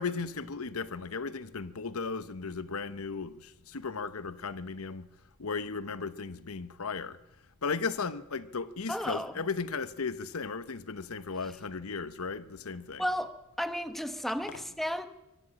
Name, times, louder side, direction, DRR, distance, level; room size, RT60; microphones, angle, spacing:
voice 1, 0.0-5.1 5.4-7.2 7.6-13.1 14.5-14.7, left 4 dB, 80° left, 0.9 m, -36 dB
voice 2, 8.9-9.3 13.0-15.1, equal, ahead, 1.2 m, -33 dB
24.0 x 12.5 x 8.7 m
head